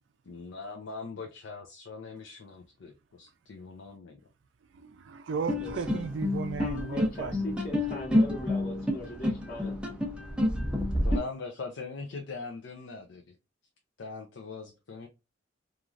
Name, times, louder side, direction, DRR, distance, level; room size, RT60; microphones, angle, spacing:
voice 1, 0.3-2.9 3.2-4.2 11.0-13.4 14.0-15.1, left 4 dB, 75° left, 0.5 m, -41 dB
voice 2, 4.7-7.4, right 5 dB, 75° right, 0.4 m, -35 dB
sound 1, 5.5-11.2, left 1 dB, 5° right, 0.6 m, -29 dB
voice 3, 6.6-9.8, left 1 dB, 40° left, 1.0 m, -40 dB
3.0 x 2.4 x 2.4 m
head